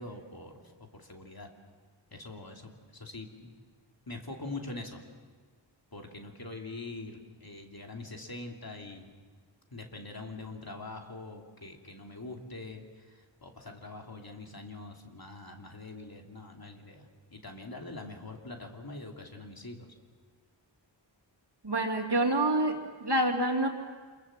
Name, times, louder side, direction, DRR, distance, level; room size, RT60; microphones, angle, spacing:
voice 1, 0.0-1.5 2.1-3.5 4.1-5.0 5.9-9.1 9.7-19.9, left 2 dB, 50° left, 2 dB, 2.9 m, -44 dB
voice 2, 21.6-23.7, right 1 dB, 60° right, 3 dB, 3.0 m, -27 dB
27.0 x 22.5 x 7.6 m, 1.5 s
wide cardioid pair, 60°, 46 cm